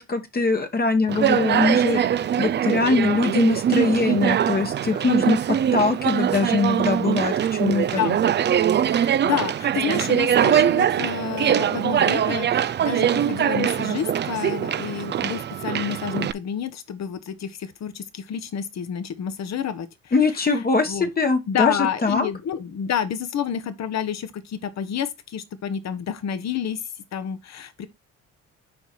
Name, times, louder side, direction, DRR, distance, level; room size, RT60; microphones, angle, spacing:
voice 1, 0.0-2.0 2.4-8.0 20.1-22.3, left 3 dB, 30° left, 1.1 m, -22 dB
Conversation, 1.1-16.3, right 9 dB, 35° right, 0.4 m, -22 dB
voice 2, 8.8-20.1 20.4-21.1 21.5-27.9, left 8 dB, 60° left, 1.2 m, -29 dB
6.3 x 4.6 x 4.4 m
cardioid pair, 90°, 30 cm